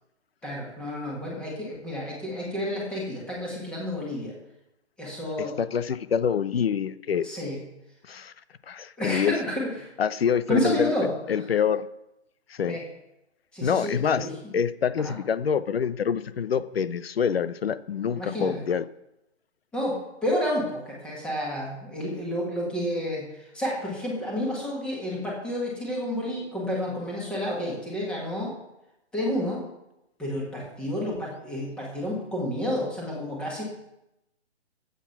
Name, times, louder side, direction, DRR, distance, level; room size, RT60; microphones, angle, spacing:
voice 1, 0.4-4.3 5.0-5.6 7.2-7.6 9.0-9.9 10.5-11.1 12.7-12.8 13.5-14.5 15.0-15.1 18.1-18.6 19.7-23.3 23.5-28.5 29.1-29.6 30.2-33.6, left 1 dB, 5° left, -4 dB, 1.7 m, -30 dB
voice 2, 5.4-7.3 8.1-8.3 8.7-9.3 10.0-10.9 11.3-11.9 12.5-12.8 13.6-14.3 14.5-18.8, left 7 dB, 55° left, 15 dB, 0.8 m, -26 dB
13.5 x 8.4 x 5.9 m, 0.89 s
hypercardioid pair, 170°, 35 cm